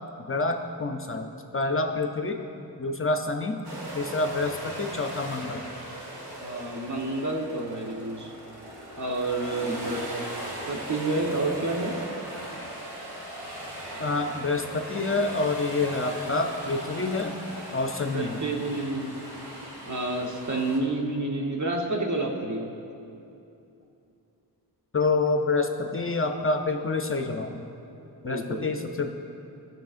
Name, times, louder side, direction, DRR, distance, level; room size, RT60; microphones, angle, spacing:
voice 1, 0.3-1.3 1.5-2.4 2.8-3.6 3.9-5.6 14.0-17.3 17.7-18.4 24.9-27.7 28.2-29.1, left 3 dB, 35° left, 5 dB, 0.5 m, -27 dB
sound 1, 3.6-20.8, right 1 dB, 70° right, 1.9 m, -39 dB
voice 2, 6.4-8.3 9.0-10.3 10.7-12.0 18.1-19.3 19.8-22.7 28.2-28.7, right 2 dB, 45° right, 0 dB, 1.1 m, -29 dB
14.0 x 6.3 x 2.5 m, 2.8 s
cardioid pair, 55°, 40 cm